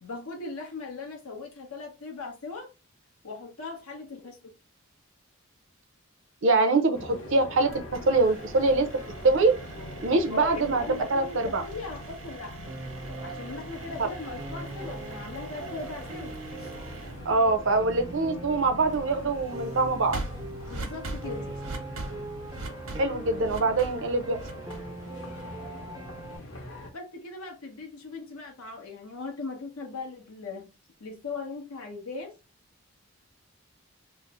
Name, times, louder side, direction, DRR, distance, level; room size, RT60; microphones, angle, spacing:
voice 1, 0.0-2.7 3.2-4.5 10.3-12.7 13.2-16.7 20.6-21.5 26.9-30.7 31.0-32.3, left 3 dB, 85° left, 1.0 m, -39 dB
voice 2, 6.4-7.7 8.1-8.9 9.2-9.6 10.0-11.6 17.3-20.2 23.0-24.4, right 3 dB, 60° right, 0.6 m, -24 dB
sound 1, 6.9-26.9, equal, 60° left, 1.0 m, -43 dB
sound 2, 7.7-25.6, right 2 dB, 85° right, 1.0 m, -43 dB
Piano, 12.7-26.4, right 2 dB, 15° right, 0.4 m, -42 dB
3.1 x 2.0 x 3.6 m
head